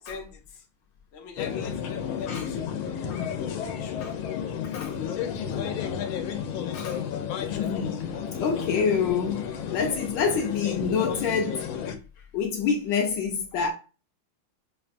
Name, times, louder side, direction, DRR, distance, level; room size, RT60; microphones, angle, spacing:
voice 1, 0.0-0.6 1.1-4.4 5.0-6.1 10.3-10.5, left 5 dB, 50° left, 0.8 m, -44 dB
sound 1, 1.4-12.0, left 8 dB, 90° left, 1.4 m, -32 dB
voice 2, 7.6-11.6 12.3-13.7, left 6 dB, 70° left, 1.2 m, -27 dB
5.6 x 2.2 x 2.4 m
omnidirectional pair, 2.2 m